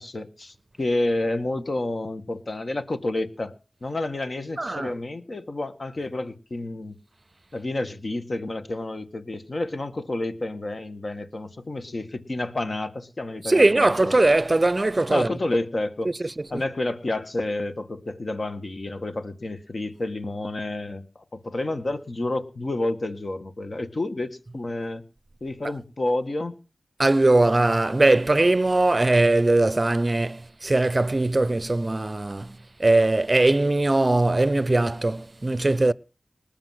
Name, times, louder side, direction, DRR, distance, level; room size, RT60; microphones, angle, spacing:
voice 1, 0.0-3.5 3.8-7.0 7.5-14.2 15.1-16.1 16.5-25.0 25.4-26.6, left 2 dB, 50° left, 1.8 m, -30 dB
voice 2, 4.6-4.9 13.4-15.3 16.0-16.6 27.0-35.9, right 2 dB, 35° right, 0.7 m, -20 dB
19.5 x 6.9 x 7.8 m
cardioid pair, 55°, 0 cm